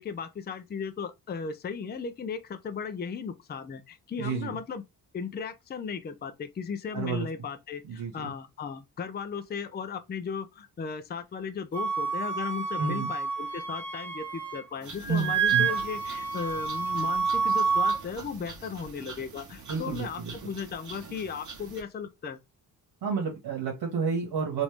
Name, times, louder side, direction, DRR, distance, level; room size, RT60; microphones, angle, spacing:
voice 1, 0.0-4.8 5.1-22.4, left 6 dB, 25° left, 0.4 m, -36 dB
voice 2, 4.2-4.6 6.9-7.3 7.8-8.3 12.8-13.1 15.1-15.7 19.7-20.5 23.0-24.6, right 5 dB, 75° right, 1.3 m, -31 dB
Wind instrument woodwind instrument, 11.7-14.7 14.9-18.0, right 5 dB, 5° left, 0.9 m, -28 dB
sound 1, 14.8-21.8, right 4 dB, 50° right, 1.1 m, -45 dB
3.1 x 2.6 x 3.3 m
cardioid pair, 110°, 39 cm